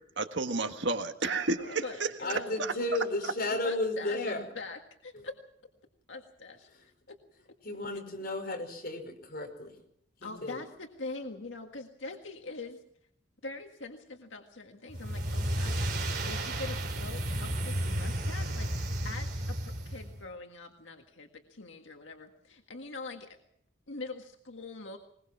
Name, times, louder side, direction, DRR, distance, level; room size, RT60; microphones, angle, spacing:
voice 1, 0.2-2.7, right 3 dB, 65° right, 7 dB, 1.6 m, -32 dB
voice 2, 1.6-2.6 3.6-5.4 6.1-6.7 7.1-7.2 10.2-12.8 13.4-23.4 23.9-25.0, left 3 dB, 75° left, 4 dB, 1.8 m, -43 dB
voice 3, 2.2-4.5 5.1-5.2 7.6-9.7 10.2-10.6, left 2 dB, 50° left, 4 dB, 5.0 m, -33 dB
sound 1, 14.9-20.2, right 1 dB, 50° right, 3.6 m, -33 dB
21.5 x 21.0 x 6.0 m, 0.69 s
head